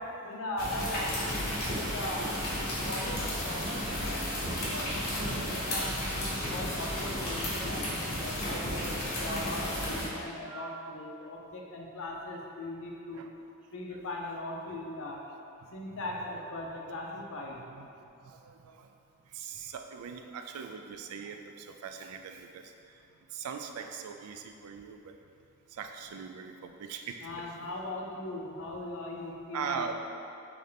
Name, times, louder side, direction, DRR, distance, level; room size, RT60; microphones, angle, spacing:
voice 1, 0.0-2.3 2.8-4.9 5.4-5.9 6.3-13.2 13.7-15.2 15.7-17.6 27.2-29.9, left 1 dB, 60° left, -1 dB, 0.5 m, -39 dB
sound 1, 0.6-10.1, left 1 dB, 45° left, 1.3 m, -33 dB
voice 2, 2.1-2.5 3.4-3.6 4.5-5.7 10.5-10.9 13.1-13.3 13.9-14.3 15.9-16.4 16.9-17.0 17.6-17.9 18.2-18.9 19.3-22.7 23.3-25.1 25.8-27.5 29.5-29.9, right 6 dB, 80° right, 6 dB, 0.3 m, -42 dB
3.5 x 3.2 x 3.7 m, 2.6 s
head